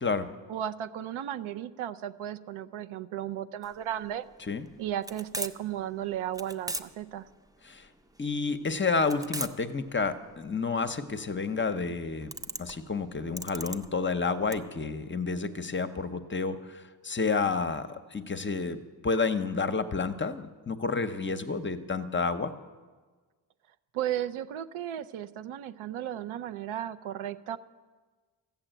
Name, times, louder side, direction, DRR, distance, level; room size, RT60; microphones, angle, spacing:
voice 1, 0.5-4.2 4.8-7.3 23.9-27.6, right 11 dB, 85° right, 10 dB, 0.7 m, -35 dB
sound 1, 3.6-14.6, right 1 dB, 10° right, 0.4 m, -40 dB
voice 2, 8.2-12.3 12.6-22.5, left 4 dB, 25° left, 10 dB, 0.7 m, -30 dB
14.0 x 7.2 x 9.0 m, 1.4 s
cardioid pair, 95°, 47 cm